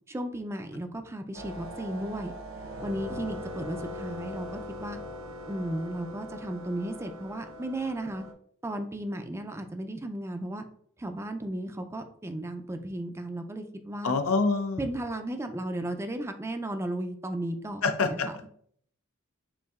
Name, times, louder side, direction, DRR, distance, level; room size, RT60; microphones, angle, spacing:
voice 1, 0.1-2.3 2.8-5.0 5.5-8.2 8.6-10.6 11.0-14.1 14.8-18.3, right 1 dB, 15° right, 6 dB, 0.4 m, -35 dB
sound 1, 1.3-8.3, left 1 dB, 80° right, 0.7 m, -41 dB
voice 2, 14.0-14.9 17.8-18.3, left 4 dB, 90° left, 7 dB, 0.6 m, -26 dB
7.0 x 2.6 x 2.4 m, 0.62 s
head